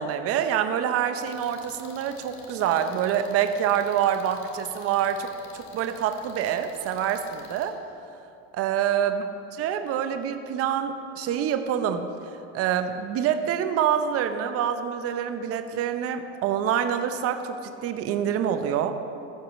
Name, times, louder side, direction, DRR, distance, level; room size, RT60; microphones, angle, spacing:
voice 1, 0.0-7.8 8.5-9.2 9.5-12.0 12.5-19.0, right 9 dB, 40° right, 8 dB, 0.8 m, -26 dB
sound 1, 1.2-7.7, left 4 dB, 70° left, 2.2 m, -49 dB
14.5 x 4.9 x 7.1 m, 2.8 s
supercardioid pair, 115°, 36 cm